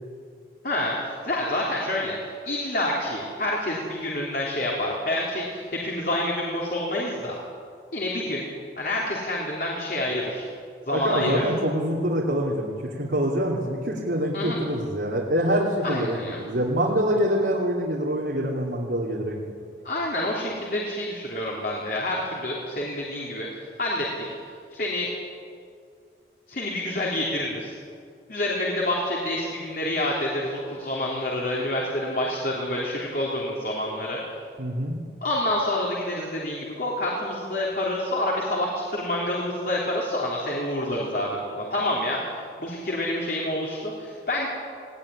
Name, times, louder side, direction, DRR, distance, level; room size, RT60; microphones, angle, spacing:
voice 1, 0.6-2.2 2.5-7.4 7.9-8.5 8.8-10.5 10.9-11.4 14.3-14.6 15.8-16.4 19.9-23.5 23.8-24.1 24.7-25.1 26.5-27.7 28.3-34.2 35.2-42.2 42.6-44.5, left 1 dB, 55° left, -3 dB, 3.5 m, -28 dB
voice 2, 10.9-19.4 34.6-35.0, equal, 75° right, -3 dB, 2.7 m, -25 dB
20.0 x 18.0 x 9.9 m, 2.3 s
head